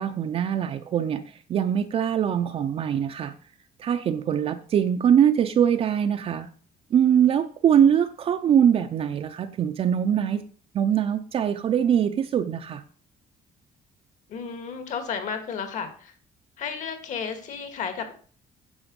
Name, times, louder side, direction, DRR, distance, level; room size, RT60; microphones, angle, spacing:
voice 1, 0.0-3.3 3.8-6.5 6.9-10.4 10.7-12.8, right 9 dB, 40° right, 0.5 m, -22 dB
voice 2, 14.3-16.1 16.6-18.1, left 6 dB, 55° left, 1.9 m, -33 dB
9.7 x 7.1 x 5.3 m
cardioid pair, 170°, 15 cm